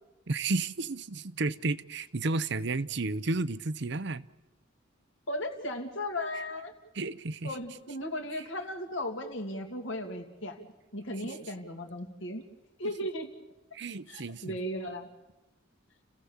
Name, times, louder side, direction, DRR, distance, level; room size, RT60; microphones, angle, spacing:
voice 1, 0.3-4.3 6.9-7.6 11.2-11.3 13.7-14.6, right 3 dB, 55° right, 17 dB, 0.7 m, -32 dB
voice 2, 5.3-6.7 7.4-10.6 10.9-12.4 12.8-13.3 14.1-15.1, left 1 dB, 65° left, 3 dB, 2.7 m, -36 dB
29.5 x 16.5 x 7.3 m, 1.1 s
head